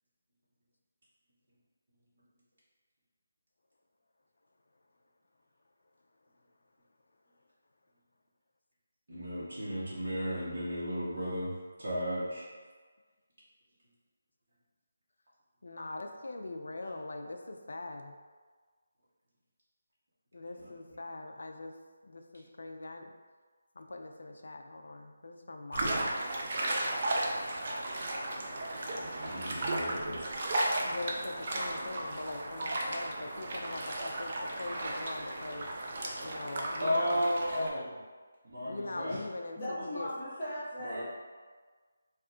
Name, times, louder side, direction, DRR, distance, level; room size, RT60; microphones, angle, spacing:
voice 1, 9.1-11.5 11.8-12.5 16.8-16.9 20.6-20.7 29.0-30.3 36.8-37.9 38.4-39.2 40.8-41.0, equal, 55° right, -9 dB, 0.9 m, -34 dB
voice 2, 15.6-18.1 20.3-21.7 22.0-23.1 23.8-26.1 30.8-34.3 34.6-35.7 36.2-37.3 38.6-40.1, left 2 dB, 70° left, 4 dB, 0.4 m, -42 dB
sound 1, 25.7-37.7, right 1 dB, 35° right, 0.4 m, -35 dB
voice 3, 38.9-39.2 39.6-41.0, equal, 10° left, -17 dB, 0.7 m, -38 dB
2.7 x 2.3 x 3.6 m, 1.5 s
hypercardioid pair, 175°, 0 cm